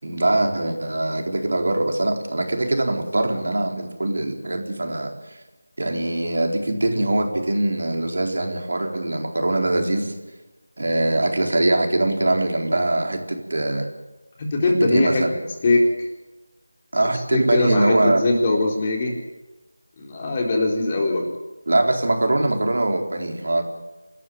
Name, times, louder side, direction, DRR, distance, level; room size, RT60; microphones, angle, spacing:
voice 1, 0.0-5.1 5.8-10.1 10.8-13.9 14.6-15.4 16.9-18.3 21.7-23.6, right 1 dB, 55° right, 3 dB, 4.1 m, -22 dB
voice 2, 14.4-15.2 15.6-16.1 17.3-19.2 20.0-21.3, left 2 dB, 25° left, 1 dB, 3.9 m, -21 dB
26.0 x 13.5 x 9.4 m, 1.1 s
figure-of-eight pair, 165°, 0 cm